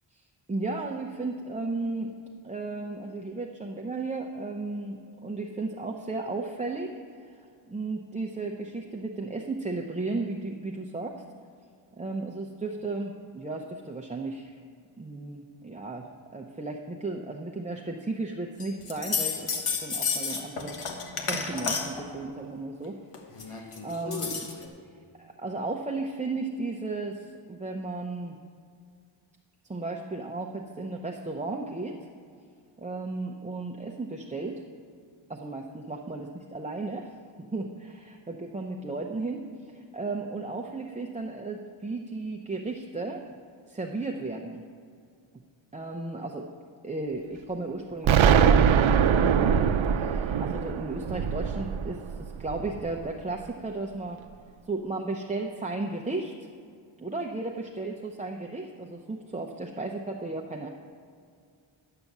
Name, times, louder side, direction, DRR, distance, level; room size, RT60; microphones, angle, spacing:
voice 1, 0.5-2.1 2.4-6.9 7.2-7.3 7.7-11.2 12.0-14.6 15.0-16.1 16.3-20.8 21.3-23.0 23.4-24.5 25.2-28.3 29.7-32.0 32.8-34.6 35.3-37.1 37.5-39.4 39.7-43.2 43.7-44.6 45.7-46.5 46.8-54.2 54.7-56.3 57.0-60.7, right 3 dB, 15° right, 0 dB, 0.5 m, -34 dB
sound 1, 18.6-22.1 23.1-24.6, left 5 dB, 90° left, 1.3 m, -31 dB
Explosion, 48.0-52.9, right 7 dB, 70° right, 0.6 m, -22 dB
10.5 x 6.7 x 7.1 m, 2.3 s
wide cardioid pair, 145°, 50 cm